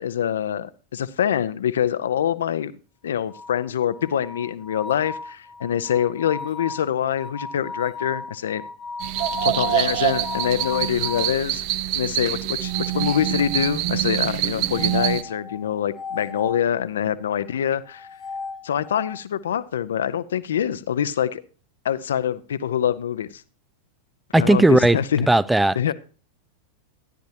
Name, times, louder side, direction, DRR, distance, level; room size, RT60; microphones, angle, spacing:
voice 1, 0.0-2.7 3.0-8.6 9.4-11.6 11.9-18.1 18.6-21.4 21.8-23.4 24.3-25.3 25.8-25.9, left 9 dB, 70° left, 0.6 m, -25 dB
sound 1, 3.3-11.4 12.7-13.9 14.7-16.7 17.9-19.2, left 4 dB, 20° left, 0.8 m, -36 dB
sound 2, 9.0-15.2, right 15 dB, 50° right, 0.7 m, -25 dB
voice 2, 24.3-25.0 25.3-25.9, right 2 dB, 5° right, 0.4 m, -17 dB
13.5 x 10.5 x 2.8 m
figure-of-eight pair, 90°, 0 cm